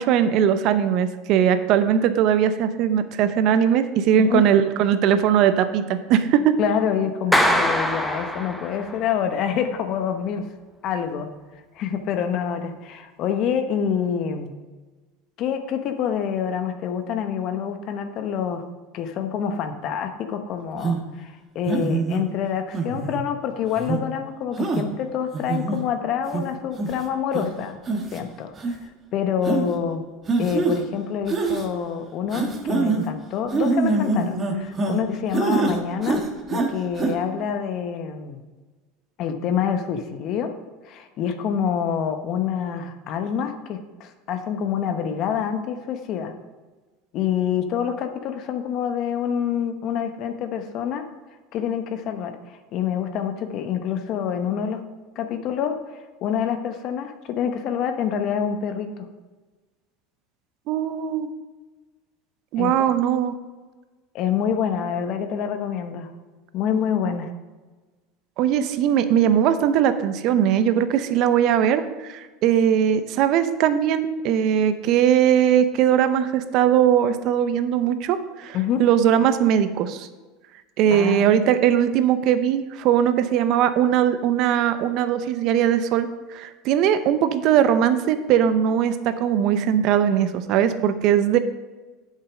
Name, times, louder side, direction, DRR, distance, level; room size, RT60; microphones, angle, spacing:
voice 1, 0.0-6.5 60.7-61.3 62.5-63.4 68.4-80.1 80.8-91.4, right 9 dB, 60° right, 11 dB, 0.7 m, -20 dB
voice 2, 6.6-10.5 10.8-11.3 11.7-14.6 15.4-18.6 18.9-27.8 28.1-28.8 29.1-30.0 30.4-36.2 36.5-38.4 39.2-40.5 40.8-46.3 47.1-51.0 51.5-54.8 55.2-59.1 62.6-62.7 64.1-66.1 66.5-67.3 78.5-78.8 80.9-81.3, left 8 dB, 55° left, 7 dB, 1.0 m, -27 dB
Clapping, 7.3-9.1, equal, 5° left, 1.0 m, -22 dB
sound 1, 20.8-21.0 21.7-22.2 22.7-23.2 23.8-24.0 24.6-24.8 25.3-25.8 26.3-26.4 26.8-27.0 27.3-27.4 27.8-28.2 28.6-28.7 29.4-29.6 30.3-30.8 31.3-31.7 32.3-33.0 33.5-35.0 35.3-35.8 36.0-36.7 37.0-37.1, right 3 dB, 30° right, 1.5 m, -24 dB
8.1 x 6.7 x 5.0 m, 1.3 s
hypercardioid pair, 90°, 0 cm